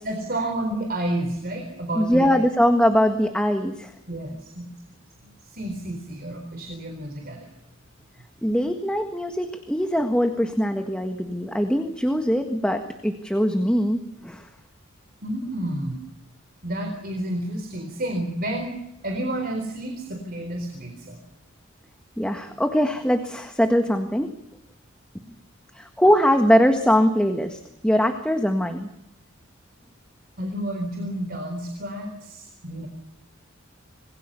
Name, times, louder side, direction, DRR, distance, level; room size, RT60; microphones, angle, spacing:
voice 1, 0.0-2.4 4.1-4.7 5.2-7.5 15.2-16.0 16.6-18.7 19.0-21.2 30.4-32.9, right 1 dB, 45° right, 4 dB, 4.1 m, -30 dB
voice 2, 2.0-3.9 8.4-14.5 22.2-24.3 25.7-28.9, equal, 5° left, 5 dB, 1.6 m, -22 dB
26.5 x 21.5 x 7.0 m, 0.82 s
head